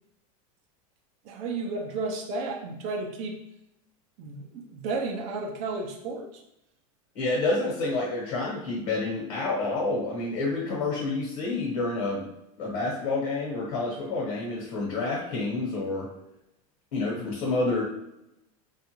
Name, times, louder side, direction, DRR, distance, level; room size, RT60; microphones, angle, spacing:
voice 1, 1.2-3.4 4.2-6.4, right 3 dB, 40° right, 2 dB, 0.5 m, -33 dB
voice 2, 7.1-12.3 12.6-16.1 16.9-17.8, left 3 dB, 65° left, -3 dB, 1.1 m, -28 dB
3.2 x 2.4 x 3.0 m, 0.83 s
supercardioid pair, 165°, 17 cm